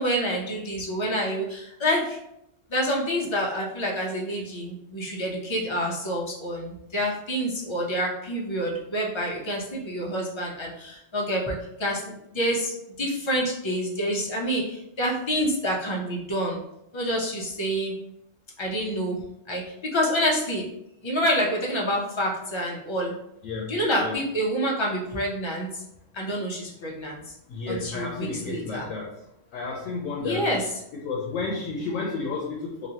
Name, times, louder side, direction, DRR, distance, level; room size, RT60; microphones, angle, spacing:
voice 1, 0.0-2.2 2.7-12.0 12.3-16.6 16.9-17.9 18.6-19.2 19.5-19.6 19.9-20.7 21.0-23.1 23.7-25.8 26.1-27.3 27.7-28.9 30.2-30.6, equal, 35° left, -2 dB, 0.5 m, -27 dB
voice 2, 23.4-24.2 27.5-29.1 29.5-30.6 31.0-32.9, left 4 dB, 90° left, -2 dB, 1.0 m, -32 dB
3.0 x 2.5 x 2.7 m, 0.80 s
omnidirectional pair, 1.3 m